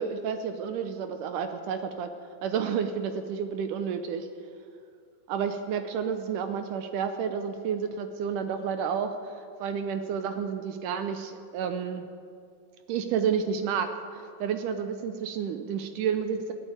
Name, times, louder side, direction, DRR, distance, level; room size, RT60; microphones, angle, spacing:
voice 1, 0.0-2.1 2.4-4.3 5.3-9.3 9.6-12.1 12.9-16.5, right 7 dB, 75° right, 8 dB, 2.1 m, -30 dB
16.5 x 7.2 x 9.4 m, 2.3 s
omnidirectional pair, 4.1 m